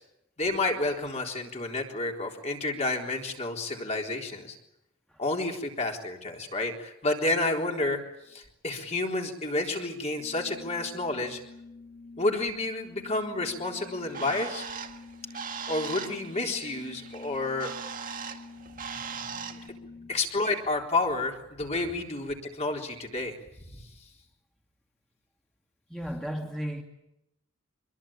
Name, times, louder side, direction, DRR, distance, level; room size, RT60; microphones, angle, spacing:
voice 1, 0.4-4.6 5.2-8.0 8.3-11.4 12.2-14.7 15.7-17.7 20.1-23.4 23.7-23.8, left 2 dB, 30° left, 3.9 m, -30 dB
Organ, 10.1-20.4, left 3 dB, 55° left, 7.9 m, -48 dB
Bird, 13.8-19.7, right 6 dB, 40° right, 1.9 m, -40 dB
voice 2, 18.7-20.2 25.9-26.8, equal, ahead, 2.5 m, -38 dB
26.0 x 22.0 x 8.9 m
head